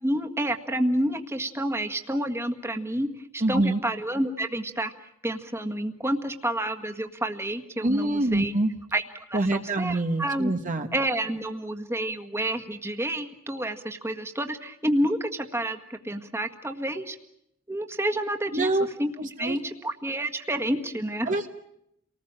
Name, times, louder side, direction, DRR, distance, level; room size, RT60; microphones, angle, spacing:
voice 1, 0.0-3.1 3.3-4.9 5.2-8.5 8.9-9.0 9.3-10.5 10.9-17.2 17.7-18.7 19.0-19.1 19.4-21.3, right 1 dB, 10° right, 5 dB, 1.8 m, -29 dB
voice 2, 3.4-3.8 7.8-8.7 9.3-10.9 18.5-18.9 19.4-19.6 21.2-21.5, right 2 dB, 40° right, 5 dB, 1.3 m, -25 dB
29.5 x 19.5 x 8.9 m, 0.78 s
head